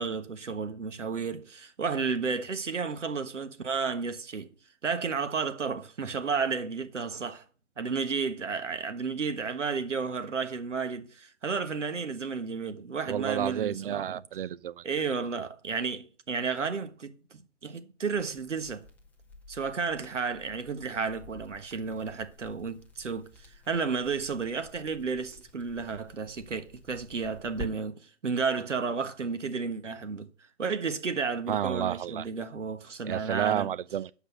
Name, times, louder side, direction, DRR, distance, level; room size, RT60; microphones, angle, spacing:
voice 1, 0.0-4.5 4.8-7.4 7.8-14.2 14.8-18.8 19.5-23.3 23.7-30.3 30.6-33.7, right 5 dB, 85° right, 1.5 m, -32 dB
voice 2, 13.1-14.8 31.5-32.3 33.0-34.1, right 10 dB, 50° right, 0.5 m, -31 dB
Crackle, 18.1-27.7, left 1 dB, 5° left, 1.1 m, -50 dB
8.3 x 5.3 x 6.6 m
figure-of-eight pair, 135°, 36 cm